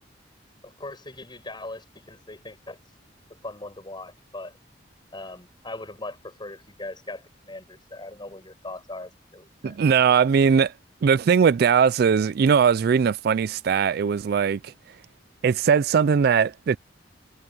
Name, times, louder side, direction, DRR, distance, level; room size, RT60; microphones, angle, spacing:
voice 1, 0.6-2.8 3.4-4.6 5.1-9.8, left 2 dB, 25° left, 7.1 m, -40 dB
voice 2, 9.6-10.7 11.0-14.7 15.4-16.8, right 6 dB, 55° right, 0.3 m, -20 dB
head